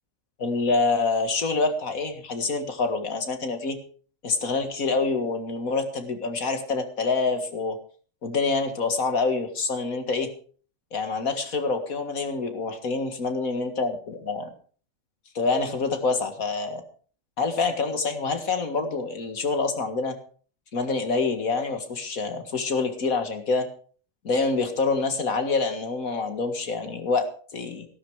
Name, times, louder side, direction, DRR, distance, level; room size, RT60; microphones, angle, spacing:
voice 1, 0.4-3.8 4.2-7.8 8.2-10.3 10.9-14.5 15.3-16.8 17.4-20.2 20.7-23.7 24.2-27.9, left 4 dB, 85° left, 7 dB, 2.3 m, -26 dB
14.5 x 12.5 x 4.9 m, 0.43 s
omnidirectional pair, 1.4 m